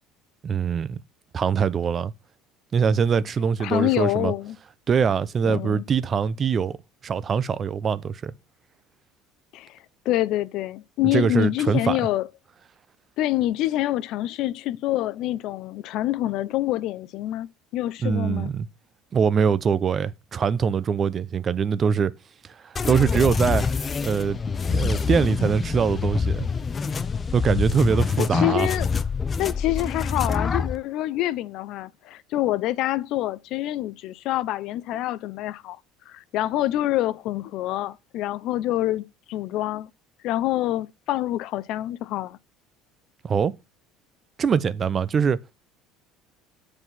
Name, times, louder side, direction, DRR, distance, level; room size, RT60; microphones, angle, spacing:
voice 1, 0.4-1.0 1.3-2.1 2.7-4.3 4.9-6.8 7.0-8.3 11.1-12.0 18.0-18.7 19.1-22.1 22.6-23.7 24.0-24.4 24.7-26.5 27.3-28.7 43.2-43.5 44.4-45.4, right 6 dB, 35° right, 0.6 m, -23 dB
voice 2, 3.6-4.6 5.4-5.8 9.5-9.8 10.0-12.3 13.2-18.5 28.2-28.9 29.4-35.8 36.1-39.9 40.2-42.4, left 15 dB, 65° left, 0.6 m, -26 dB
sound 1, 22.8-30.8, left 5 dB, 30° left, 0.8 m, -26 dB
7.9 x 4.9 x 5.6 m
supercardioid pair, 100°, 0 cm